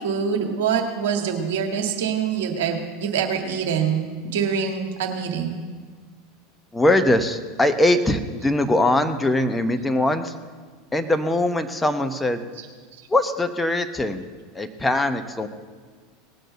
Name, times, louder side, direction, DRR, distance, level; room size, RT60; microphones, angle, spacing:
voice 1, 0.0-5.6 13.0-13.1, right 7 dB, 60° right, 3 dB, 1.7 m, -25 dB
voice 2, 6.7-10.3 10.9-12.4 13.1-14.3 14.5-15.5, left 1 dB, 10° left, 7 dB, 1.1 m, -21 dB
18.5 x 7.8 x 7.7 m, 1.5 s
figure-of-eight pair, 80°, 0 cm